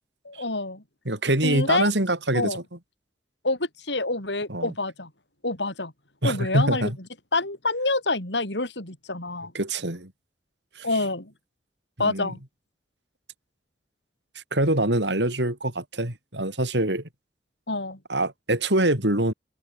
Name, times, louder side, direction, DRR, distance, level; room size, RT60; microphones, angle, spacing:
voice 1, 0.3-0.8 1.4-1.9 2.3-2.6 3.4-5.1 5.4-5.9 6.2-6.9 7.3-9.5 10.8-11.3 12.0-12.4 17.7-18.0, left 2 dB, 80° left, 6.8 m, -27 dB
voice 2, 1.0-2.6 4.5-4.7 6.2-7.0 9.5-10.1 10.8-10.9 12.0-12.3 14.3-17.1 18.1-19.3, right 1 dB, 80° right, 6.2 m, -24 dB
head